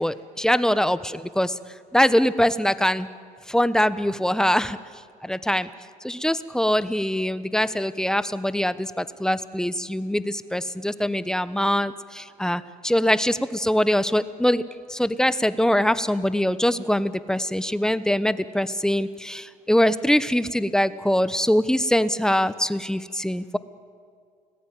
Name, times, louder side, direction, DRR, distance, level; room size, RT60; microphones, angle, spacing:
voice 1, 0.0-1.6 1.9-3.1 3.5-4.8 5.2-5.7 6.0-14.6 14.9-23.6, equal, 5° left, 14 dB, 0.9 m, -23 dB
29.5 x 20.0 x 9.4 m, 2.2 s
cardioid pair, 95°, 15 cm